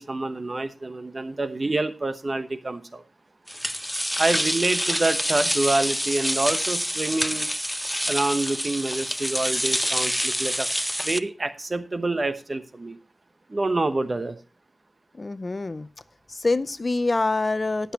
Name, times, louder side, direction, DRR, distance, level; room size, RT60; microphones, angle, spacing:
voice 1, 0.0-3.0 4.2-7.5 8.1-10.7 11.0-13.0 13.5-14.4, right 2 dB, 45° right, 10 dB, 1.0 m, -27 dB
sound 1, 3.5-11.2, equal, ahead, 0.4 m, -27 dB
voice 2, 15.2-15.9 16.3-17.9, left 3 dB, 45° left, 14 dB, 0.6 m, -25 dB
18.5 x 6.8 x 3.0 m, 0.32 s
wide cardioid pair, 70°, 0 cm